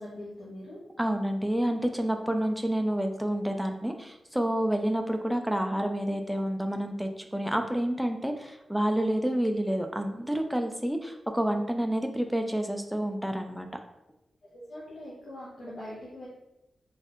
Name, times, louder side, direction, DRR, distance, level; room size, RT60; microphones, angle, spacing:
voice 1, 0.0-0.8 14.5-16.3, left 1 dB, 55° left, -8 dB, 1.0 m, -42 dB
voice 2, 1.0-13.7, right 1 dB, ahead, 4 dB, 0.3 m, -29 dB
3.9 x 2.6 x 2.9 m, 0.90 s
wide cardioid pair, 130°, 0 cm